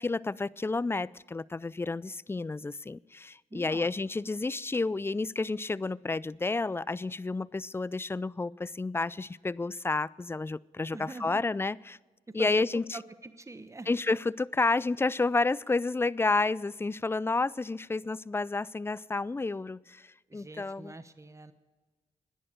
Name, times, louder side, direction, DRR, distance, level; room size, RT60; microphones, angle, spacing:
voice 1, 0.0-12.0 12.3-13.0 13.9-20.1 20.3-20.9, left 3 dB, 15° left, 23 dB, 0.3 m, -30 dB
voice 2, 3.5-3.9 10.9-11.4 12.3-12.5 12.9-13.9 20.3-21.5, right 2 dB, 20° right, 12 dB, 1.0 m, -43 dB
11.0 x 10.0 x 8.9 m, 1.3 s
cardioid pair, 50°, 15 cm